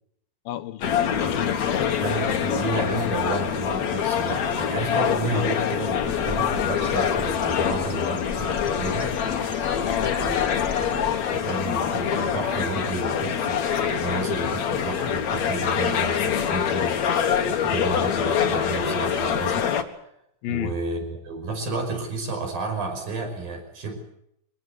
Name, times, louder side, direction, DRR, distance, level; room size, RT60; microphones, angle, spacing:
voice 1, 0.5-2.0 9.8-10.2 20.4-20.8, left 13 dB, 90° left, 2.9 m, -32 dB
sound 1, 0.8-19.8, left 8 dB, 60° left, 2.7 m, -25 dB
voice 2, 2.0-9.1 10.2-10.4 10.8-17.0 17.6-19.7 20.5-24.0, right 3 dB, 85° right, 7.4 m, -31 dB
Bird, 5.8-11.4, left 2 dB, 10° left, 1.7 m, -38 dB
24.0 x 19.5 x 8.2 m
omnidirectional pair, 4.0 m